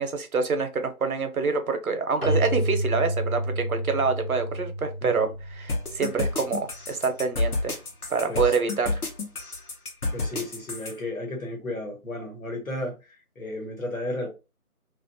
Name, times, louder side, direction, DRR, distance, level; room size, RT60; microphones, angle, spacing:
voice 1, 0.0-7.8 8.1-9.0, right 4 dB, 75° right, 0.7 m, -26 dB
Keyboard (musical), 2.2-6.7, right 1 dB, 45° right, 0.4 m, -30 dB
sound 1, 5.7-10.9, left 2 dB, 85° left, 0.9 m, -30 dB
voice 2, 10.1-13.0 13.4-14.3, left 1 dB, 65° left, 1.2 m, -33 dB
2.5 x 2.1 x 2.6 m
figure-of-eight pair, 170°, 44 cm